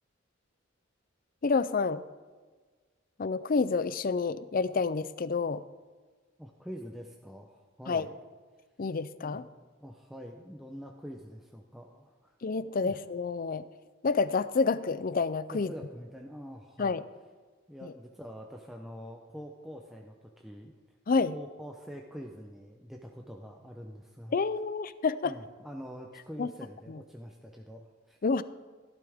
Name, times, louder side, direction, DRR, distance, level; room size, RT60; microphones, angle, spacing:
voice 1, 1.4-2.0 3.2-5.6 7.9-8.1 8.8-9.4 12.4-13.6 14.0-15.7 16.8-17.0 17.8-17.9 21.1-21.3 24.3-25.3 26.4-26.5 26.9-27.0 28.2-28.4, left 4 dB, 45° left, 15 dB, 0.5 m, -28 dB
voice 2, 6.4-8.1 9.2-12.4 12.8-13.0 15.5-17.0 17.7-21.0 21.3-24.4 25.2-28.2, equal, ahead, 1 dB, 0.7 m, -45 dB
15.5 x 12.0 x 3.6 m, 1.4 s
head